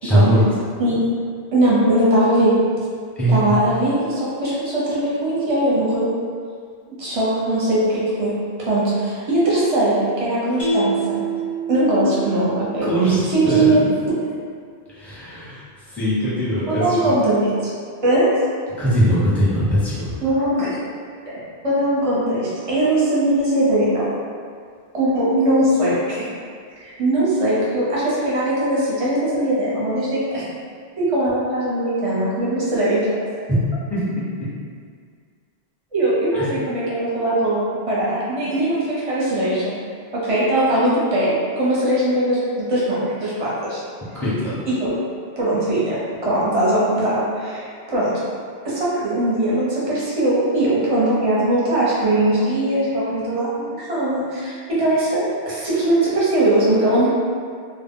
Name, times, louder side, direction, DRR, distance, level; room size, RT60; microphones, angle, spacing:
voice 1, 0.0-0.4 3.2-3.5 12.8-13.9 14.9-15.6 15.9-17.1 18.8-20.1 33.9-34.0 36.3-36.5 44.2-44.7, equal, ahead, -11 dB, 0.6 m, -20 dB
voice 2, 1.5-2.5 3.3-6.1 7.0-8.3 8.6-11.2 11.7-12.9 13.3-13.8 16.7-17.7 18.0-18.3 20.2-20.8 21.3-21.4 21.6-24.1 24.9-26.3 26.8-30.4 31.0-33.2 35.9-39.7 40.1-43.8 44.7-44.9 45.4-48.1 48.6-57.1, right 1 dB, 35° right, -8 dB, 0.6 m, -20 dB
Mallet percussion, 10.6-13.9, right 3 dB, 50° left, 0.6 m, -27 dB
2.1 x 2.0 x 3.6 m, 2.1 s
omnidirectional pair, 1.1 m